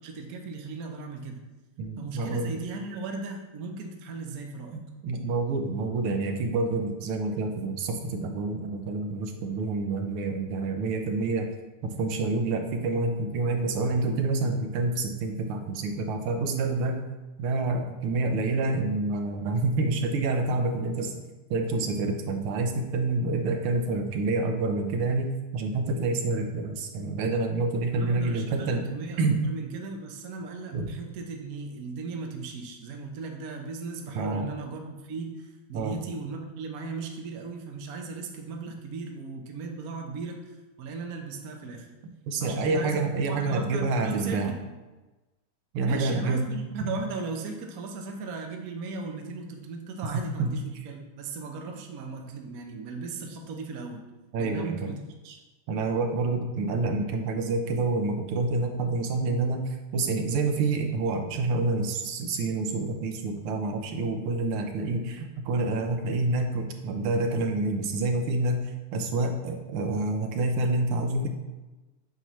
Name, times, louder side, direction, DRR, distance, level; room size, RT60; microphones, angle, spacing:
voice 1, 0.0-1.4 2.0-4.8 27.9-41.9 42.4-43.0 43.3-44.6 45.8-54.0 54.4-55.4, right 3 dB, 60° right, 2 dB, 1.0 m, -37 dB
voice 2, 1.8-2.6 5.0-11.5 11.8-17.0 17.4-21.1 21.5-28.8 29.2-29.4 30.7-30.9 34.2-34.5 35.7-35.9 42.3-44.5 45.7-46.5 46.9-47.0 50.4-50.6 54.3-54.9 55.7-71.3, right 3 dB, 85° right, 4 dB, 1.7 m, -28 dB
7.8 x 5.7 x 3.1 m, 1.1 s
omnidirectional pair, 2.3 m